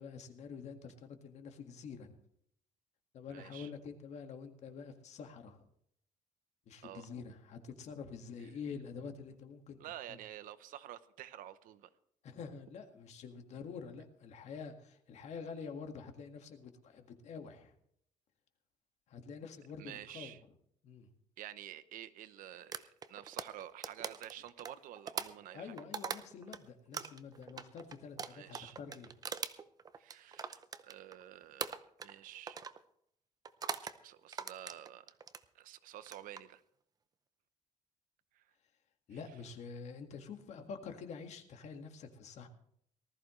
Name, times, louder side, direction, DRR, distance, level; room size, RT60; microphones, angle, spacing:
voice 1, 0.0-2.2 3.1-5.7 6.7-9.8 10.1-10.2 12.2-17.7 19.1-20.3 20.8-21.1 25.5-29.1 39.1-42.5, left 5 dB, 55° left, 5 dB, 1.9 m, -47 dB
voice 2, 3.3-3.7 6.8-7.1 9.8-11.9 19.8-20.4 21.4-25.8 28.3-28.8 30.0-32.6 34.0-35.1 35.5-36.6 38.3-38.4, right 12 dB, 80° right, 14 dB, 0.9 m, -50 dB
sound 1, 22.7-26.6 26.9-31.2 31.6-32.2 32.5-32.8 33.4-34.0 34.3-35.4 36.0-36.4, right 6 dB, 30° right, 0.6 m, -42 dB
19.5 x 14.0 x 3.2 m, 0.70 s
cardioid pair, 170°, 14 cm